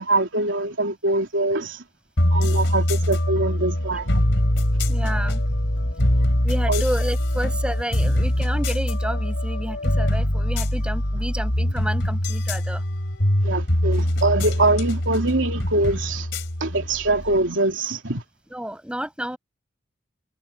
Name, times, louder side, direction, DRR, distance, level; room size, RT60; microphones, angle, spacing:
voice 1, 0.0-1.8 2.3-4.2 6.7-6.8 13.4-16.3 16.6-18.2, right 2 dB, 90° right, 3.1 m, -23 dB
sound 1, 2.2-17.4, left 1 dB, 70° left, 3.7 m, -23 dB
voice 2, 4.8-5.4 5.8-5.9 6.4-12.8 18.5-19.4, equal, 5° right, 6.6 m, -30 dB
head